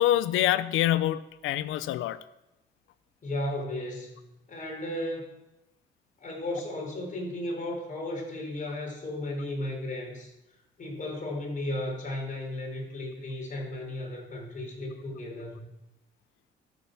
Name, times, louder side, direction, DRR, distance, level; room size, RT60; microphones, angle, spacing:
voice 1, 0.0-2.2, left 13 dB, 90° left, 0.6 m, -25 dB
voice 2, 3.2-4.1 4.5-5.4 6.2-10.3 10.8-15.7, left 1 dB, 40° left, 4.7 m, -34 dB
13.0 x 6.4 x 6.9 m
cardioid pair, 90°, 20 cm